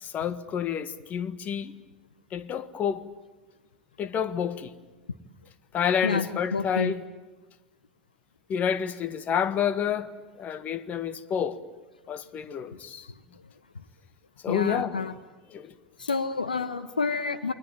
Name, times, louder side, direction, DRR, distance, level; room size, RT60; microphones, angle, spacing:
voice 1, 0.0-1.7 2.3-3.1 4.0-4.7 5.7-7.0 8.5-11.6 12.1-13.1 14.4-15.0 15.5-15.8, left 8 dB, 35° left, 1.6 m, -29 dB
voice 2, 6.0-6.9 12.7-12.8 13.3-13.4 13.7-13.8 14.5-15.1 16.0-17.5, left 4 dB, 85° left, 1.1 m, -29 dB
28.5 x 23.0 x 8.9 m
figure-of-eight pair, 80°, 4 cm